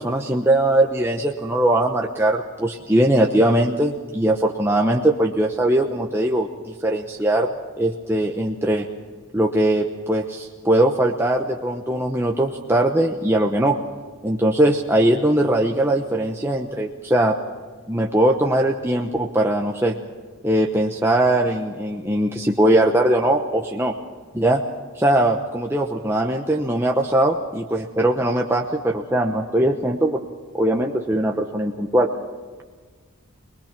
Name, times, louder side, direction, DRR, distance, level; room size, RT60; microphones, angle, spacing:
voice 1, 0.0-7.5 7.8-8.9 9.3-13.8 14.2-17.3 17.9-20.0 20.4-23.9 24.3-24.6 24.9-30.2 30.5-32.1, right 1 dB, 10° right, 1 dB, 0.9 m, -20 dB
25.0 x 20.5 x 6.0 m, 1.5 s
head